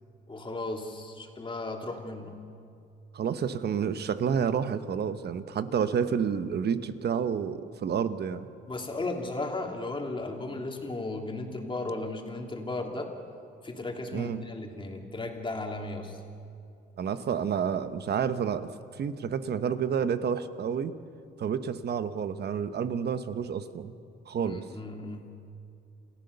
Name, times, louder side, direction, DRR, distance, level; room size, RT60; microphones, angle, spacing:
voice 1, 0.3-2.4 8.7-13.1 13.6-16.2 24.3-25.2, left 2 dB, 25° left, 2 dB, 3.0 m, -35 dB
voice 2, 3.1-8.5 14.1-14.4 17.0-18.7 19.0-20.9 21.4-23.9 24.3-24.6, right 7 dB, 55° right, 11 dB, 1.1 m, -29 dB
28.5 x 14.5 x 6.9 m, 2.5 s
cardioid pair, 90°, 20 cm